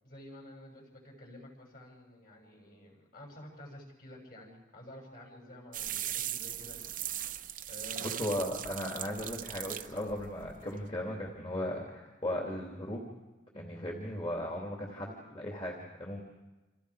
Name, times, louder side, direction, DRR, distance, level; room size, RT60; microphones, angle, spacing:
voice 1, 0.0-6.8 7.7-8.7, left 1 dB, 45° left, 1 dB, 7.4 m, -50 dB
sound 1, 5.7-10.9, right 11 dB, 45° right, 0.8 m, -39 dB
voice 2, 8.0-13.1 13.5-16.2, left 1 dB, 30° left, -1 dB, 3.0 m, -37 dB
29.5 x 27.5 x 5.1 m, 1.1 s
head